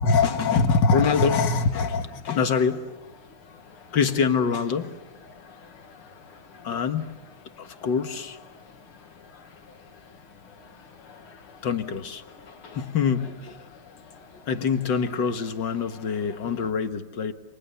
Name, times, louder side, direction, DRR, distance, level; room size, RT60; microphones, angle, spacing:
voice 1, 0.0-2.8 3.9-4.9 6.6-7.1 7.6-8.4 11.6-12.2 12.7-13.7 14.5-17.3, left 5 dB, 60° left, 2.1 m, -24 dB
sound 1, 0.6-16.7, left 5 dB, 85° left, 2.7 m, -50 dB
30.0 x 27.0 x 7.0 m
omnidirectional pair, 2.3 m